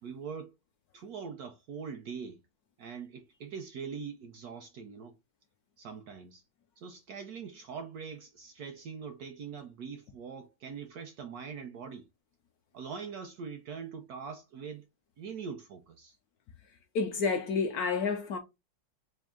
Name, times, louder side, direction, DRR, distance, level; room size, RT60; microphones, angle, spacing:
voice 1, 0.0-0.5 0.9-2.4 2.8-5.2 5.8-6.4 6.8-12.0 12.7-14.8 15.2-16.2, right 6 dB, 75° right, 0.9 m, -42 dB
voice 2, 16.9-18.4, left 5 dB, 70° left, 0.9 m, -29 dB
3.5 x 2.6 x 3.5 m
omnidirectional pair, 2.0 m